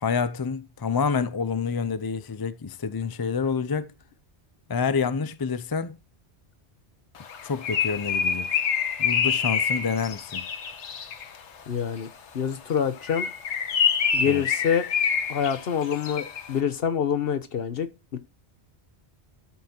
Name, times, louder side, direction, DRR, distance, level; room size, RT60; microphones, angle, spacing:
voice 1, 0.0-3.9 4.7-6.0 7.4-8.5 9.0-10.5 14.2-14.4, left 5 dB, 30° left, 0.4 m, -28 dB
Bird, 7.3-11.4 13.0-16.5, left 7 dB, 90° left, 1.2 m, -26 dB
voice 2, 11.7-12.1 12.3-13.3 14.1-14.9 15.3-18.2, left 8 dB, 60° left, 1.1 m, -26 dB
13.0 x 5.7 x 2.9 m
omnidirectional pair, 1.1 m